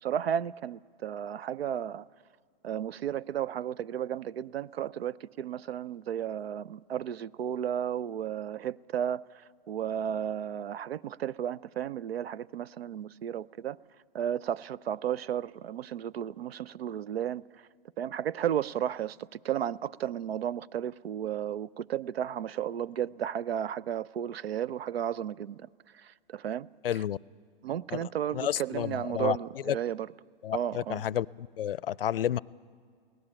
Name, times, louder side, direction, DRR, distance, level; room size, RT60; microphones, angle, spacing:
voice 1, 0.0-2.0 2.6-13.8 14.1-17.4 18.0-25.7 26.0-26.7 27.6-30.1 30.5-31.0, right 10 dB, 80° right, 0.6 m, -33 dB
voice 2, 26.8-27.2 27.9-29.4 29.6-29.8 30.4-32.4, left 11 dB, 65° left, 0.5 m, -31 dB
24.0 x 17.5 x 8.9 m
hypercardioid pair, 175°, 30 cm